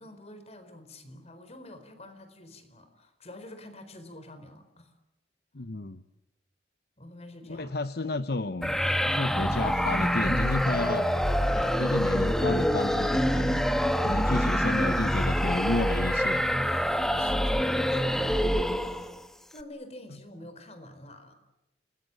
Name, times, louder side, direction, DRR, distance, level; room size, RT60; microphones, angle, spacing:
voice 1, 0.0-4.9 7.0-7.7 14.1-14.6 17.1-18.5 19.5-21.3, left 1 dB, 35° left, 10 dB, 4.3 m, -47 dB
voice 2, 5.5-6.0 7.4-8.7 9.0-11.1 11.5-13.6 14.0-16.5, left 2 dB, 60° left, 11 dB, 0.9 m, -31 dB
sound 1, 8.6-19.2, equal, 5° left, 1.3 m, -26 dB
29.0 x 21.0 x 9.1 m, 0.95 s
head